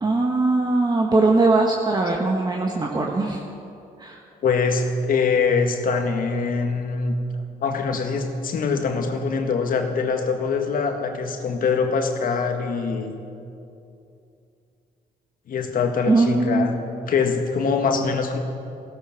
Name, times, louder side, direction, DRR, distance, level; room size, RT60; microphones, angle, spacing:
voice 1, 0.0-3.4 4.0-4.2 16.1-16.8, right 3 dB, 25° right, 0 dB, 1.5 m, -20 dB
voice 2, 4.4-7.2 7.6-13.2 15.5-16.8 17.1-18.4, left 5 dB, 65° left, 4 dB, 1.8 m, -23 dB
16.0 x 14.5 x 6.1 m, 2.7 s
cardioid pair, 80°, 16 cm